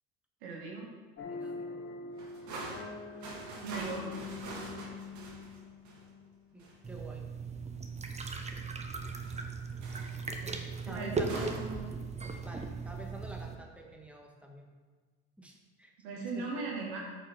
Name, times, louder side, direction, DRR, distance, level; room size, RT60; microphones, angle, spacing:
voice 1, 0.4-0.9 3.6-4.1 10.4-12.0 16.0-17.0, right 4 dB, 85° right, -2 dB, 2.1 m, -39 dB
sound 1, 1.2-6.6, left 4 dB, 40° left, 0.9 m, -44 dB
voice 2, 1.3-1.7 6.5-7.2 8.5-8.6 10.5-11.5 12.4-14.7 15.4-15.9 16.4-16.5, right 1 dB, 5° right, 0 dB, 1.7 m, -48 dB
sound 2, 2.1-6.1 6.6-6.8 9.0-9.5 9.8-10.2 11.2-11.7, right 2 dB, 65° right, 2.1 m, -44 dB
sound 3, 6.8-13.5, right 4 dB, 20° right, 1.0 m, -38 dB
8.3 x 5.2 x 5.5 m, 1.4 s
supercardioid pair, 80°, 32 cm